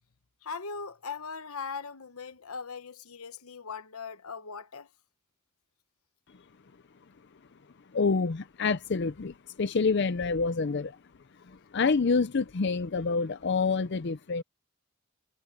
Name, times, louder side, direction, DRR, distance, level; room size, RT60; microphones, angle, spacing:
voice 1, 0.4-4.9, left 5 dB, 85° left, 1.2 m, -39 dB
voice 2, 7.9-11.0 11.5-14.4, left 4 dB, 50° left, 0.5 m, -27 dB
head